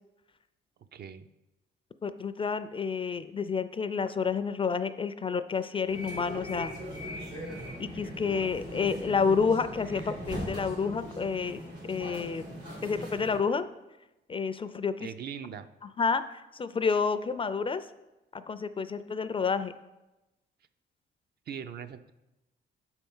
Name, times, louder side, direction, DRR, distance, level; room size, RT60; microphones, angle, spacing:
voice 1, 0.9-1.3 15.0-15.7 21.5-22.1, right 7 dB, 55° right, 11 dB, 0.5 m, -40 dB
voice 2, 2.0-6.7 7.8-12.4 12.8-13.7 14.3-15.1 16.0-17.9 18.3-19.7, left 5 dB, 25° left, 12 dB, 0.3 m, -29 dB
sound 1, 5.9-13.4, equal, 90° right, 2.7 m, -40 dB
7.0 x 4.5 x 5.4 m, 0.99 s
cardioid pair, 90°, 20 cm